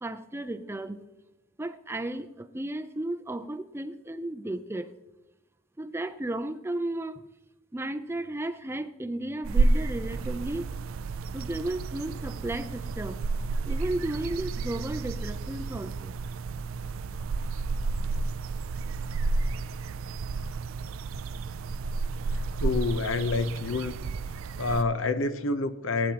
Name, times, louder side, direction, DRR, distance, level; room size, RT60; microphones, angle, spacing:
voice 1, 0.0-1.1 1.6-4.9 5.8-7.2 7.7-10.7 11.3-13.2 13.6-16.1, right 1 dB, 10° right, 9 dB, 0.5 m, -34 dB
sound 1, 9.4-24.8, right 3 dB, 75° right, 0.4 m, -31 dB
voice 2, 22.6-24.0 24.6-26.1, left 3 dB, 75° left, 12 dB, 0.8 m, -28 dB
19.0 x 9.8 x 2.9 m, 0.93 s
head